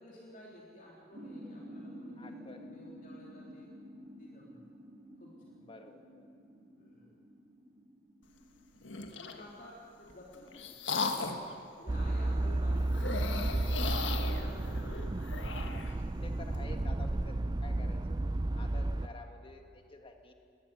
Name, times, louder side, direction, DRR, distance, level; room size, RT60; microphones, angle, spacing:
voice 1, 0.0-3.7 4.1-4.5 5.2-5.6 6.8-7.2 9.1-14.9 19.0-19.2, left 1 dB, 45° left, -4 dB, 3.3 m, -53 dB
sound 1, 1.1-10.4, equal, 50° right, 3.5 m, -51 dB
voice 2, 2.2-2.7 5.6-6.3 16.0-18.2 18.5-20.3, left 2 dB, 30° left, 4 dB, 1.7 m, -50 dB
sound 2, 8.8-9.4 10.1-11.5 12.9-16.0, left 4 dB, 80° left, 1.6 m, -37 dB
sound 3, 11.9-19.1, right 2 dB, 20° right, 0.4 m, -32 dB
21.0 x 16.0 x 9.6 m, 2.3 s
head